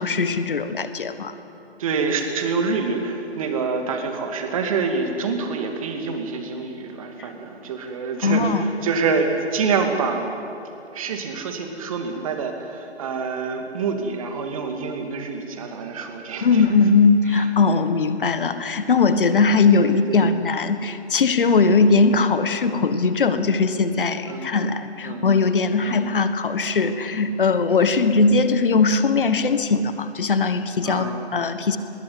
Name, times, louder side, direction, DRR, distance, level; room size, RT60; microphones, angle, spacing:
voice 1, 0.0-1.3 8.2-8.7 16.4-31.8, left 4 dB, 50° left, 11 dB, 1.5 m, -20 dB
voice 2, 1.8-10.3 10.9-16.7 17.3-17.5 19.9-20.3 22.1-22.2 24.3-24.6 25.0-25.3 25.8-26.0 27.8-28.0 30.8-31.3, right 4 dB, 30° right, 5 dB, 2.4 m, -27 dB
20.5 x 17.5 x 9.6 m, 2.8 s
figure-of-eight pair, 150°, 33 cm